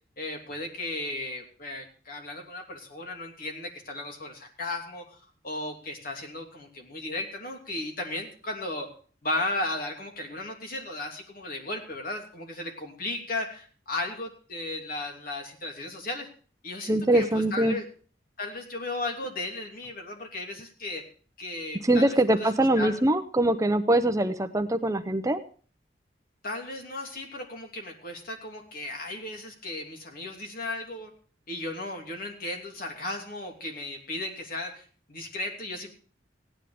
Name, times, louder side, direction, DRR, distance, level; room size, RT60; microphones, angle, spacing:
voice 1, 0.2-8.9 9.2-16.3 16.6-17.9 18.4-21.0 21.4-22.5 22.8-23.0 26.4-31.1 31.5-35.9, left 2 dB, 55° left, 3 dB, 2.9 m, -35 dB
voice 2, 16.9-17.8 21.8-25.4, right 1 dB, 20° right, 9 dB, 0.7 m, -23 dB
16.5 x 9.9 x 5.0 m, 0.43 s
head